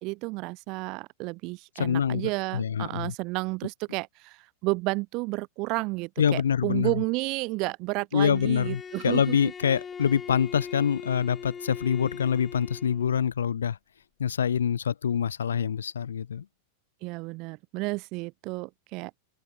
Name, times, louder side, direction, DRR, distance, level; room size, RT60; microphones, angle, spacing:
voice 1, 0.0-9.4 17.0-19.2, right 25 dB, 40° right, 1.8 m, -31 dB
voice 2, 1.8-3.1 6.2-6.9 8.1-13.8 14.2-16.4, left 8 dB, 65° left, 1.4 m, -25 dB
Bowed string instrument, 8.3-13.2, left 6 dB, 20° left, 1.6 m, -41 dB
open air
figure-of-eight pair, 90°, 0 cm